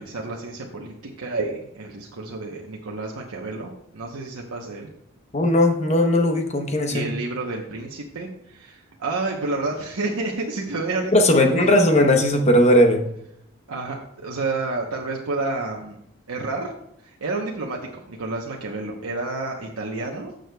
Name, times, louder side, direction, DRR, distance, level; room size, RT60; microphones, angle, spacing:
voice 1, 0.0-4.9 6.9-12.1 13.7-16.0 16.3-16.7 17.0-20.3, right 3 dB, 90° right, -1 dB, 0.9 m, -30 dB
voice 2, 5.3-7.1 11.1-13.0, left 1 dB, 30° left, 5 dB, 0.8 m, -18 dB
16.0 x 6.4 x 2.3 m, 0.75 s
head